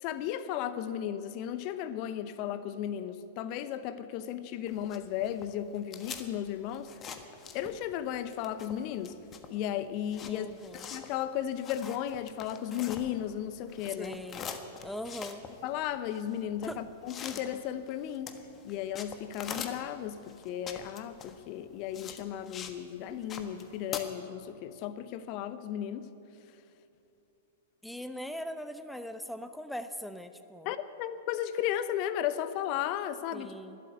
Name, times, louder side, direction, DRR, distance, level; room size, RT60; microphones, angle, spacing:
voice 1, 0.0-6.9 7.5-9.2 9.5-10.5 10.8-14.2 15.6-18.3 18.6-26.1 30.6-33.5, left 10 dB, 45° left, 12 dB, 0.8 m, -35 dB
sound 1, 4.7-8.0 8.3-13.4 13.7-22.8 23.1-24.0, left 7 dB, 25° left, 1.4 m, -44 dB
voice 2, 10.3-10.9 14.0-14.5 14.8-15.4 16.7-16.8 17.3-17.4 27.8-30.7 33.3-33.8, equal, 5° left, 10 dB, 0.7 m, -40 dB
12.5 x 12.0 x 9.5 m, 2.8 s
figure-of-eight pair, 105°, 0 cm